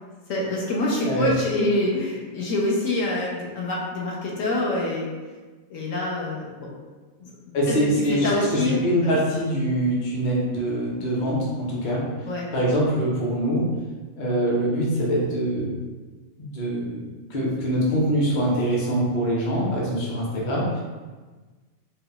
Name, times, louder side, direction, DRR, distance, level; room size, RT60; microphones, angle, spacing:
voice 1, 0.3-5.1 5.7-6.7 7.2-7.3 7.7-7.8 8.1-9.1 12.3-12.5, left 2 dB, 70° left, -4 dB, 1.2 m, -26 dB
voice 2, 7.5-12.0 12.5-13.7 14.1-15.7 16.4-17.0 17.3-20.8, equal, 40° left, -4 dB, 0.8 m, -24 dB
3.9 x 2.3 x 4.0 m, 1.3 s
omnidirectional pair, 1.4 m